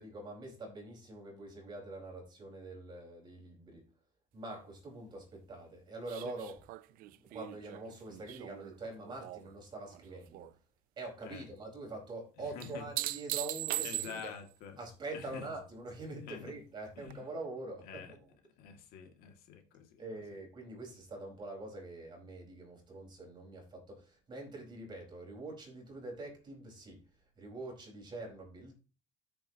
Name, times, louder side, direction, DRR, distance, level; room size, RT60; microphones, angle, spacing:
voice 1, 0.0-3.8 4.3-6.6 7.3-10.5 11.0-14.3 14.8-18.3 20.0-27.0 27.4-28.7, right 2 dB, 30° right, 4.5 m, -45 dB
sound 1, 6.1-9.5 9.9-10.5 12.6-14.5 17.1-17.2, right 17 dB, 65° right, 0.5 m, -40 dB
voice 2, 12.5-12.8 13.8-14.8 15.1-15.5 16.3-16.5 17.0-17.2 17.9-18.1 18.6-20.0, left 7 dB, 70° left, 2.1 m, -47 dB
13.5 x 7.0 x 2.9 m
cardioid pair, 150°, 16 cm